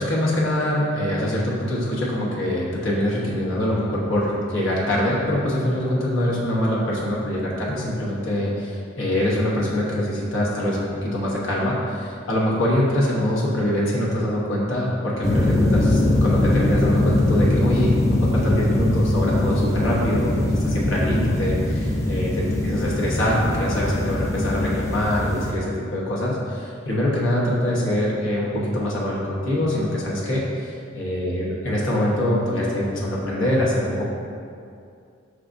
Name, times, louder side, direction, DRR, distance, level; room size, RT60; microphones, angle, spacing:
voice 1, 0.0-34.1, left 1 dB, 75° left, -5 dB, 1.0 m, -24 dB
sound 1, 15.2-25.5, left 1 dB, 15° left, 0.3 m, -21 dB
4.8 x 3.7 x 2.6 m, 2.4 s
head